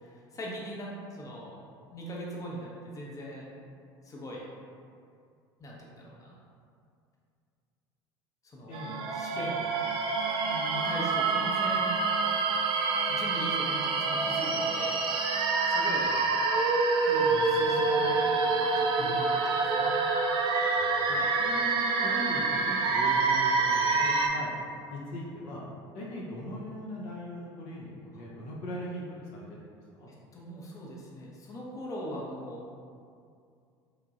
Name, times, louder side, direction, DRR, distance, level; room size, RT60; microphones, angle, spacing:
voice 1, 0.0-1.6 1.9-3.5 4.0-4.5 5.6-6.4 8.4-9.8 10.4-11.9 13.1-16.1 17.0-20.0 21.1-21.3 28.1-28.2 30.3-32.8, equal, 25° left, -4 dB, 0.7 m, -41 dB
voice 2, 8.7-9.0 15.9-16.2 17.3-18.1 19.0-19.1 20.6-24.5 24.9-25.6 25.9-30.1, left 1 dB, 65° left, -4 dB, 0.6 m, -40 dB
sound 1, 8.7-24.3, right 4 dB, 45° right, 0.4 m, -27 dB
3.0 x 2.5 x 2.4 m, 2.3 s
hypercardioid pair, 75°, 13 cm